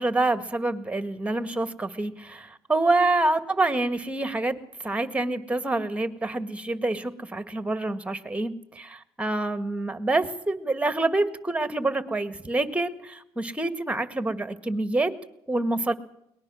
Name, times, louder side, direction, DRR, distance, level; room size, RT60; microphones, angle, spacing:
voice 1, 0.0-15.1 15.5-15.9, right 2 dB, 10° right, 11 dB, 1.8 m, -27 dB
22.5 x 19.5 x 6.3 m, 0.78 s
supercardioid pair, 80°, 12 cm